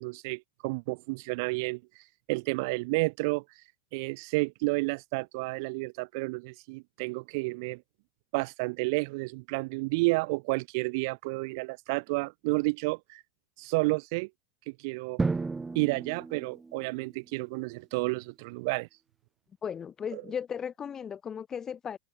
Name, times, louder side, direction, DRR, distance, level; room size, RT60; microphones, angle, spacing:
voice 1, 0.0-1.8 2.3-3.4 3.9-7.8 8.3-13.2 13.6-14.3 14.7-15.2 15.7-18.9 20.1-20.2, right 27 dB, 60° right, 1.4 m, -31 dB
Drum, 15.2-17.1, right 4 dB, 10° right, 2.4 m, -33 dB
voice 2, 19.6-22.0, left 7 dB, 20° left, 2.3 m, -36 dB
supercardioid pair, 135°, 2 cm